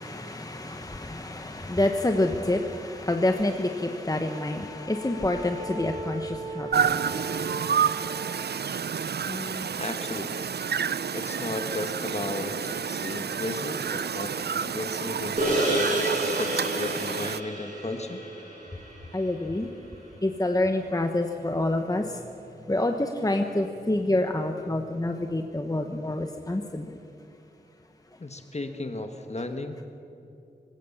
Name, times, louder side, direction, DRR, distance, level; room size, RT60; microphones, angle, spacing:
voice 1, 0.0-6.9 19.1-19.7 20.2-22.1 22.7-27.0, left 1 dB, 20° left, 5 dB, 1.0 m, -27 dB
Wind instrument woodwind instrument, 4.2-8.6, right 2 dB, 20° right, 4.2 m, -38 dB
sound 1, 6.7-17.4, right 7 dB, 70° right, 0.5 m, -29 dB
voice 2, 9.3-10.5 11.1-18.2 28.2-29.8, left 2 dB, 40° left, 6 dB, 1.3 m, -35 dB
sound 2, 15.4-19.9, right 1 dB, 50° right, 6.0 m, -30 dB
25.5 x 16.5 x 7.2 m, 2.8 s
wide cardioid pair, 85°, 17 cm